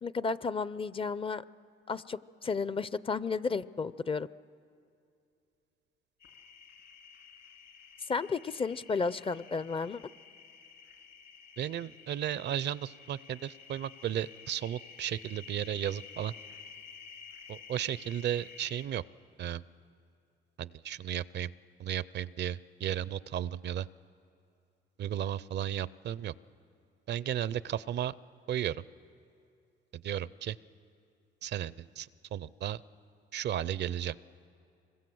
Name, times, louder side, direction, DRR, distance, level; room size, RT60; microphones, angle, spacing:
voice 1, 0.0-1.4 1.9-4.3 8.1-10.0, left 4 dB, 25° left, 17 dB, 0.5 m, -33 dB
sound 1, 6.2-18.9, left 6 dB, 65° left, 2.9 m, -52 dB
voice 2, 11.6-16.3 17.5-19.0 19.4-19.6 20.6-21.5 21.8-23.9 25.0-26.3 27.1-28.1 28.5-28.8 30.0-30.6 31.4-32.8 33.3-34.1, right 10 dB, 60° right, 19 dB, 0.5 m, -34 dB
25.5 x 22.0 x 7.8 m, 2.5 s
cardioid pair, 90°, 20 cm